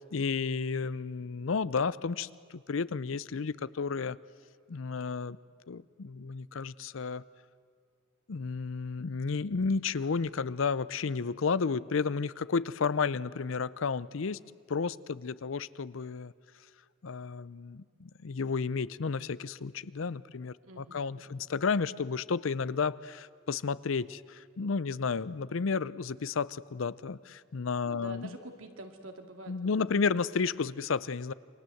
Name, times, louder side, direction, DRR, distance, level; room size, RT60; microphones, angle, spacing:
voice 1, 0.0-4.2 4.7-5.4 5.7-7.2 8.3-14.4 14.7-16.3 17.0-28.3 29.5-31.3, left 5 dB, 80° left, 18 dB, 0.6 m, -32 dB
voice 2, 20.6-21.5 27.8-30.3 30.6-30.7, right 2 dB, 90° right, 4 dB, 2.5 m, -48 dB
28.5 x 23.5 x 7.8 m, 2.2 s
head